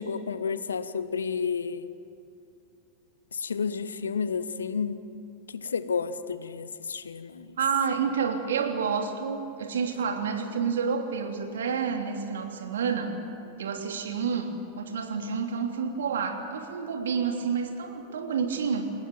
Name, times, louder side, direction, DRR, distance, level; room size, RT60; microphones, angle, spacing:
voice 1, 0.0-1.9 3.3-5.0 5.5-7.6, left 6 dB, 70° left, 14 dB, 1.1 m, -31 dB
voice 2, 7.6-13.2 13.6-18.9, right 6 dB, 65° right, 4 dB, 3.0 m, -29 dB
29.5 x 17.0 x 9.1 m, 2.6 s
figure-of-eight pair, 90°, 0 cm